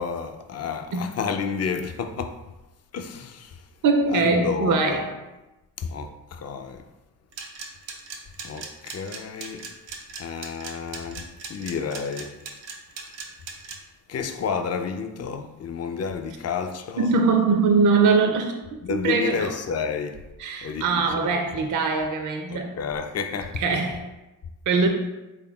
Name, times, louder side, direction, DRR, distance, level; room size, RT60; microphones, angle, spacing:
voice 1, 0.0-2.4 2.9-3.6 4.1-5.0 5.8-6.8 8.4-9.6 10.2-12.3 14.1-17.1 18.8-20.2 20.6-21.1 21.3-21.7 22.5-23.6, left 6 dB, 40° left, 0.4 m, -30 dB
voice 2, 3.8-5.1 17.0-19.5 20.4-22.8 23.6-24.1 24.7-24.9, right 4 dB, 45° right, 0.5 m, -22 dB
sound 1, 7.3-13.8, right 5 dB, 85° right, 0.6 m, -37 dB
3.6 x 3.6 x 2.3 m
supercardioid pair, 45°, 44 cm